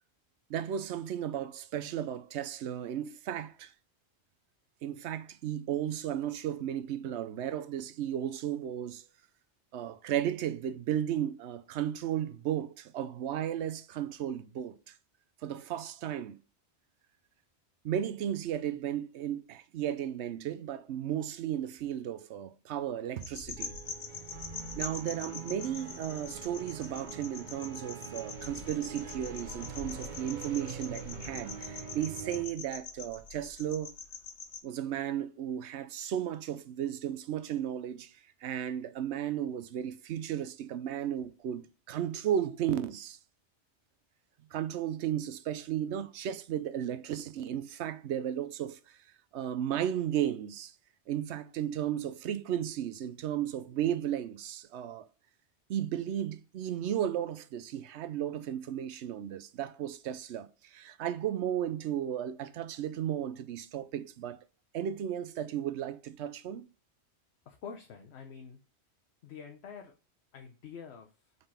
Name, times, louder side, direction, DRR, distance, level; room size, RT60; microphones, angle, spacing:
voice 1, 0.5-3.7 4.8-9.0 9.7-14.9 15.4-16.4 17.8-23.7 24.7-33.9 34.6-38.1 38.4-43.2 44.5-49.0 49.3-50.7 51.1-55.1 55.7-64.4 64.7-66.7, right 10 dB, 75° right, 0.9 m, -34 dB
sound 1, 23.2-34.6, left 5 dB, 85° left, 1.3 m, -44 dB
sound 2, 23.4-32.4, right 6 dB, 45° right, 1.0 m, -44 dB
voice 2, 67.5-68.6 69.2-69.9 70.3-71.4, left 6 dB, 70° left, 1.0 m, -47 dB
5.3 x 4.1 x 5.6 m
omnidirectional pair, 1.2 m